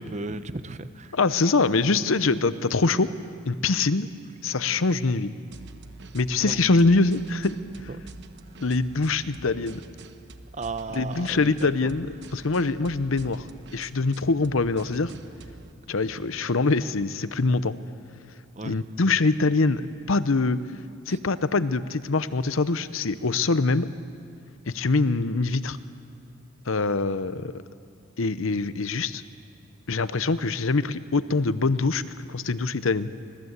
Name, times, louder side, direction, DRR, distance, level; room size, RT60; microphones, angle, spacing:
voice 1, 0.0-1.2 6.4-6.6 7.9-8.0 10.5-11.7 18.5-18.8 21.1-21.2, right 3 dB, 35° right, 12 dB, 0.8 m, -35 dB
voice 2, 1.1-3.1 3.5-4.1 4.4-5.3 6.1-7.6 8.6-9.8 10.9-13.5 13.7-15.1 15.9-17.8 18.6-19.8 20.1-20.6 21.1-23.9 24.7-25.8 26.7-27.5 28.2-29.2 29.9-32.0 32.3-33.1, left 3 dB, 70° left, 14 dB, 0.8 m, -24 dB
sound 1, 5.5-15.7, right 2 dB, 55° right, 1.1 m, -47 dB
24.5 x 19.0 x 8.1 m, 2.6 s
head